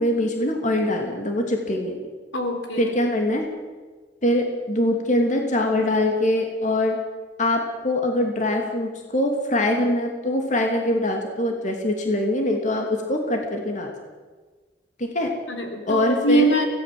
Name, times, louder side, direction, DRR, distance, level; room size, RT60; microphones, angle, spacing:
voice 1, 0.0-2.0 2.8-3.5 4.2-7.0 7.4-13.9 15.0-15.3 15.9-16.5, left 1 dB, 40° left, 2 dB, 2.8 m, -23 dB
voice 2, 2.3-2.9 15.5-16.6, right 1 dB, 80° left, 5 dB, 3.9 m, -22 dB
24.0 x 18.0 x 7.8 m, 1.4 s
head